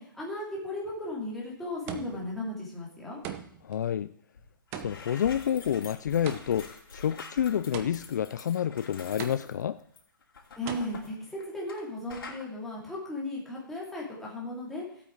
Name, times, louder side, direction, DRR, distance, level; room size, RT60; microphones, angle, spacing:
voice 1, 0.0-3.2 10.6-14.8, left 1 dB, ahead, 2.9 m, -36 dB
sound 1, 0.9-1.2 1.9-2.4 3.2-3.8 4.7-6.8 7.7-8.3 9.2-9.8 10.7-10.8, right 9 dB, 20° right, 0.8 m, -41 dB
voice 2, 3.6-4.1 4.8-9.8, left 9 dB, 55° left, 0.4 m, -29 dB
sound 2, 4.3-4.5 4.7-11.8 12.1-12.4, left 4 dB, 80° left, 3.0 m, -46 dB
15.0 x 8.5 x 4.7 m
hypercardioid pair, 165°, 12 cm